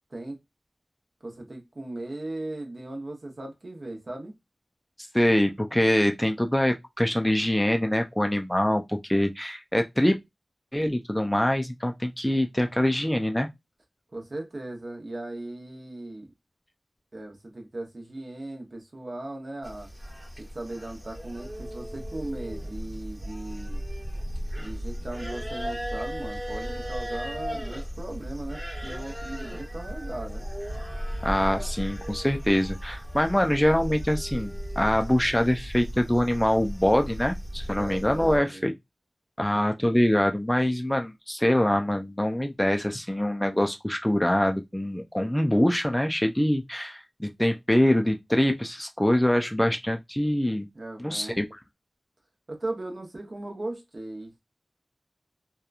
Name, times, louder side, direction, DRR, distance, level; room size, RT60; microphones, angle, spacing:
voice 1, 1.2-4.3 14.1-16.3 17.1-19.9 20.4-23.8 24.6-30.4 37.8-38.6 50.7-51.4 52.5-54.4, right 2 dB, 55° right, 0.8 m, -38 dB
voice 2, 5.1-10.2 10.7-13.5 31.2-38.7 39.4-50.7 51.0-51.6, left 1 dB, 10° left, 0.3 m, -24 dB
sound 1, 19.6-38.4, equal, 20° right, 1.1 m, -35 dB
2.9 x 2.2 x 2.3 m
wide cardioid pair, 65°, 0 cm